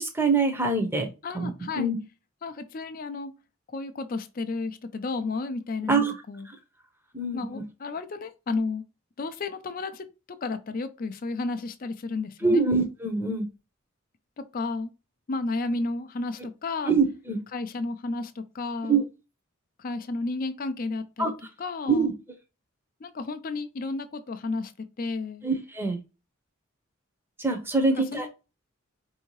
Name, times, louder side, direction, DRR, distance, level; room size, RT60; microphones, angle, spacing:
voice 1, 0.0-2.0 5.9-6.1 7.1-7.6 12.4-13.5 16.9-17.4 18.9-19.0 21.2-21.3 21.9-22.1 25.4-26.0 27.4-28.3, right 4 dB, 10° right, 0.7 m, -24 dB
voice 2, 1.2-1.9 2.4-3.3 3.7-6.5 7.3-8.8 9.2-12.6 14.4-14.9 15.3-16.9 17.5-19.0 19.8-21.3 21.6-22.1 23.0-25.4 28.1-28.3, left 3 dB, 40° left, 0.4 m, -32 dB
4.5 x 2.7 x 3.0 m
head